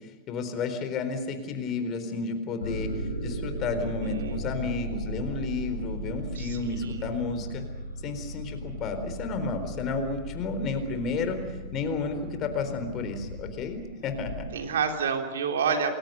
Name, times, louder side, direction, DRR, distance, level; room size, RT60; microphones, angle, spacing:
voice 1, 0.3-7.6 8.0-11.4 11.7-14.5, left 4 dB, 35° left, 7 dB, 4.2 m, -32 dB
sound 1, 2.6-14.5, equal, 75° left, 5.1 m, -37 dB
voice 2, 3.8-4.4 6.3-7.2 14.5-16.0, right 6 dB, 60° right, 4 dB, 3.2 m, -29 dB
29.0 x 21.5 x 6.8 m, 1.2 s
figure-of-eight pair, 90°, 0 cm